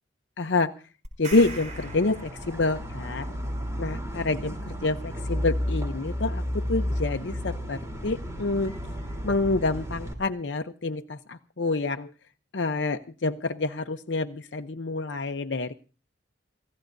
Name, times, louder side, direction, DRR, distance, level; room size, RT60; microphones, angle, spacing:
voice 1, 0.4-0.7 1.2-3.3 3.8-8.7 9.2-12.1 12.5-15.7, left 3 dB, 65° left, 7 dB, 0.7 m, -27 dB
sound 1, 1.0-3.0, right 4 dB, 40° right, 4.3 m, -42 dB
sound 2, 1.3-10.1, equal, 15° right, 3.4 m, -32 dB
29.0 x 15.5 x 2.6 m, 0.35 s
head